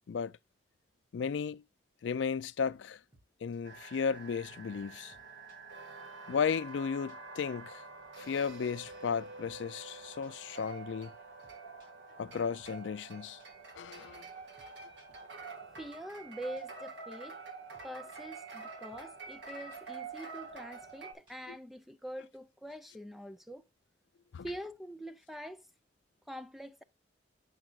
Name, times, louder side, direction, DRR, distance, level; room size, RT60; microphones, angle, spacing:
voice 1, 1.1-1.6 2.0-3.0 3.4-5.1 6.3-7.8 8.2-11.1 12.2-13.4 13.8-14.2 21.5-21.6 24.3-24.5, left 6 dB, 85° left, 0.4 m, -34 dB
sound 1, 3.1-3.3 3.5-3.6 3.9-4.0 4.3-4.4 4.7-4.8 5.1-5.6 5.9-6.0 6.3-6.4 6.7-6.8 7.1-7.2 7.5-7.6 7.8-7.9 8.3-8.4 8.6-9.6 9.8-9.9 10.2-10.3 10.6-10.7 11.0-11.1 11.4-11.9 12.2-12.3 12.6-12.7 13.0-13.1 13.4-13.5 13.8-13.9 14.2-14.3 14.6-14.7 15.0-15.9 16.1-16.2 16.6-16.7 16.9-17.0 17.3-17.4 17.7-18.2 18.5-18.6 18.9-19.0 19.3-19.4 19.7-19.8 20.1-20.2 20.5-20.6 20.9-21.0 21.3-21.5, right 1 dB, 25° right, 3.6 m, -65 dB
sound 2, 3.6-21.1, right 4 dB, 75° right, 1.6 m, -47 dB
voice 2, 15.8-17.4 17.8-23.6 24.4-25.6 26.3-26.8, equal, ahead, 0.5 m, -44 dB
8.6 x 5.9 x 2.3 m
head